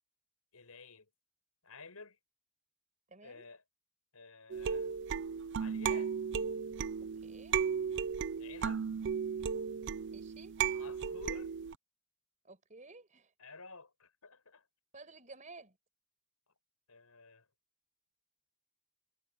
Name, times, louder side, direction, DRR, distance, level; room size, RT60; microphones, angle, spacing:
voice 1, 0.5-1.1 1.6-2.2 3.2-3.6 4.1-5.0 5.6-6.1 8.4-8.8 10.7-11.6 13.4-14.6 16.5-16.6 16.9-17.5, left 4 dB, 85° left, 5.4 m, -51 dB
voice 2, 3.1-3.5 7.0-7.6 10.0-10.6 12.4-13.3 14.9-15.8, right 3 dB, 35° right, 5.2 m, -54 dB
sound 1, 4.5-11.7, right 7 dB, 55° right, 0.4 m, -35 dB
head